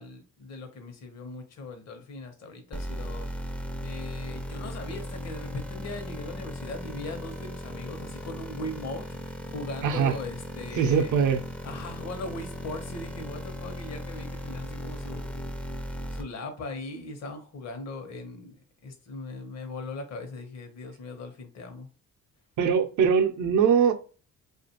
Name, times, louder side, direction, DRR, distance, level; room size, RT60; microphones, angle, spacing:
voice 1, 0.0-3.3 3.8-11.2 11.6-18.6 18.8-21.9, left 2 dB, 60° left, 0.9 m, -39 dB
sound 1, 2.7-16.2, equal, 5° left, 0.4 m, -37 dB
voice 2, 9.8-10.1 10.8-11.4 22.6-23.9, right 7 dB, 75° right, 0.6 m, -22 dB
2.4 x 2.4 x 2.8 m
cardioid pair, 90°, 30 cm